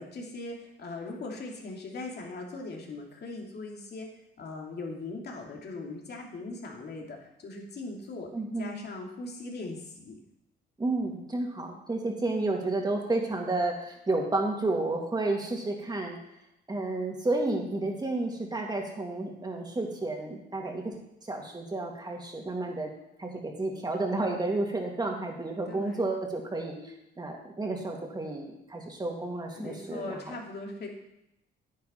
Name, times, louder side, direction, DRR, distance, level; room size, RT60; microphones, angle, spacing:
voice 1, 0.0-4.1 4.4-7.2 7.4-8.3 8.6-10.2 25.7-26.1 29.5-30.9, left 3 dB, 55° left, 0 dB, 2.6 m, -40 dB
voice 2, 8.3-8.7 10.8-16.2 16.7-20.9 21.2-22.9 23.2-30.4, right 2 dB, 20° right, 0 dB, 2.6 m, -31 dB
10.0 x 9.4 x 4.3 m, 0.83 s
cardioid pair, 90°, 20 cm